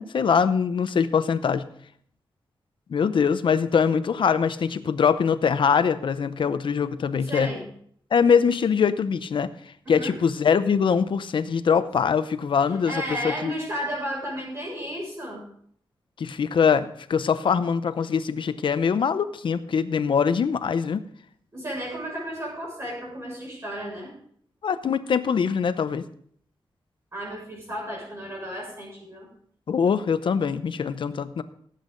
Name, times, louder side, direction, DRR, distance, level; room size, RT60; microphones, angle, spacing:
voice 1, 0.0-1.7 2.9-7.5 8.1-9.5 9.9-13.5 16.2-21.1 24.6-26.0 29.7-31.4, left 6 dB, 65° left, 12 dB, 0.7 m, -23 dB
voice 2, 7.3-7.6 9.8-10.1 12.8-15.4 21.5-24.1 27.1-29.3, equal, 30° right, -3 dB, 6.4 m, -33 dB
17.0 x 8.4 x 3.9 m, 0.62 s
wide cardioid pair, 170°, 9 cm